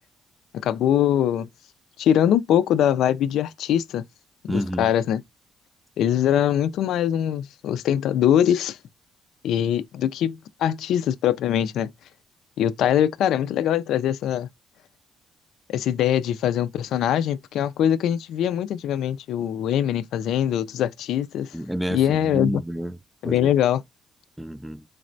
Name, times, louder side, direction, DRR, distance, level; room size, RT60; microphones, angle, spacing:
voice 1, 0.6-1.5 2.0-4.0 4.4-5.2 6.0-8.8 9.4-11.9 12.6-14.5 15.7-21.6 21.9-22.6 23.2-23.8, left 10 dB, 80° left, 0.4 m, -22 dB
voice 2, 4.5-4.9 21.5-23.0 23.2-23.5 24.4-24.8, equal, 5° right, 0.3 m, -29 dB
4.0 x 3.2 x 2.6 m
cardioid pair, 90°, 0 cm